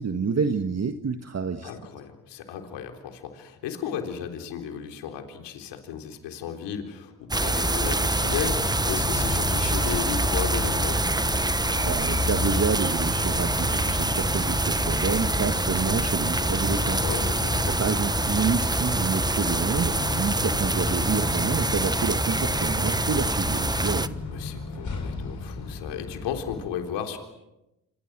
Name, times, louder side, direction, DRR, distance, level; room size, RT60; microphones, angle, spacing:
voice 1, 0.0-1.7 11.8-17.0 17.6-24.2, right 5 dB, 40° right, 7 dB, 1.7 m, -28 dB
voice 2, 1.6-11.1 16.9-17.6 24.3-27.2, left 8 dB, 75° left, 4 dB, 3.9 m, -34 dB
sound 1, 7.3-24.1, right 2 dB, 10° right, 1.1 m, -25 dB
sound 2, 8.2-26.7, left 4 dB, 45° left, 6.3 m, -34 dB
29.0 x 27.0 x 6.2 m, 0.93 s
hypercardioid pair, 55°, 42 cm